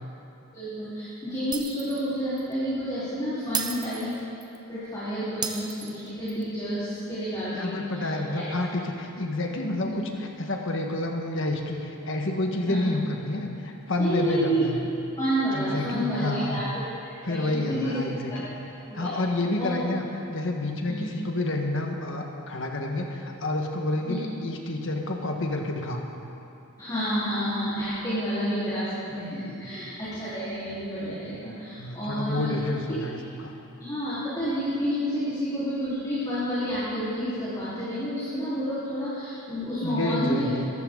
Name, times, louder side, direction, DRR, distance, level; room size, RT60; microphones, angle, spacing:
voice 1, 0.5-4.1 4.7-8.5 9.8-10.0 12.7-12.9 14.0-14.6 15.1-16.6 17.0-18.0 18.3-18.4 18.9-19.1 19.6-19.8 20.8-21.1 24.1-24.2 26.8-32.6 32.9-33.0 33.8-40.5, equal, 20° left, -13 dB, 4.1 m, -30 dB
Shatter, 1.5-2.1 2.4-2.5 3.5-4.6 5.4-6.4, right 6 dB, 20° right, 0.7 m, -33 dB
voice 2, 7.6-14.8 15.5-16.6 17.2-18.5 18.9-20.0 20.3-26.1 29.5-29.7 31.8-33.5 39.8-40.7, left 2 dB, 60° left, 2 dB, 1.6 m, -29 dB
23.0 x 14.0 x 4.0 m, 2.8 s
head